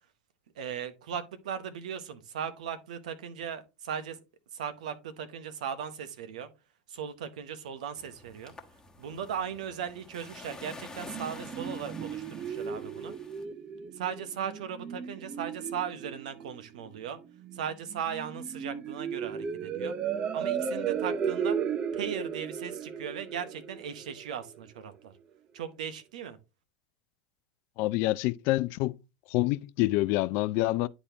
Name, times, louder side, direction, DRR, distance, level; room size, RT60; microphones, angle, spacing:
voice 1, 0.6-4.2 4.5-6.5 6.9-8.5 9.0-13.1 13.9-17.2 17.5-19.9 20.3-21.6 21.9-25.1 25.5-26.4, right 8 dB, 70° right, 1.0 m, -37 dB
sound 1, 8.0-13.4, left 3 dB, 15° left, 1.2 m, -48 dB
sound 2, 10.6-24.6, right 7 dB, 30° right, 0.6 m, -35 dB
voice 2, 27.8-29.0 29.3-30.9, left 18 dB, 55° left, 0.4 m, -27 dB
10.0 x 4.1 x 2.8 m
hypercardioid pair, 85°, 4 cm